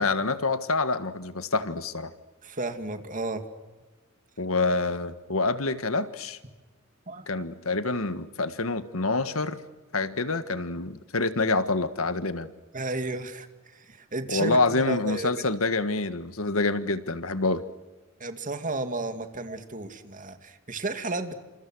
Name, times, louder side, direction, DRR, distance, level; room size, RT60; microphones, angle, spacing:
voice 1, 0.0-2.1 4.4-6.4 7.3-9.6 9.9-12.5 14.3-17.6, left 3 dB, 85° left, 11 dB, 1.7 m, -27 dB
voice 2, 2.4-3.4 7.1-7.4 12.7-13.5 13.7-15.4 18.2-21.3, right 2 dB, 40° right, 8 dB, 2.4 m, -33 dB
29.0 x 27.5 x 6.3 m, 1.2 s
head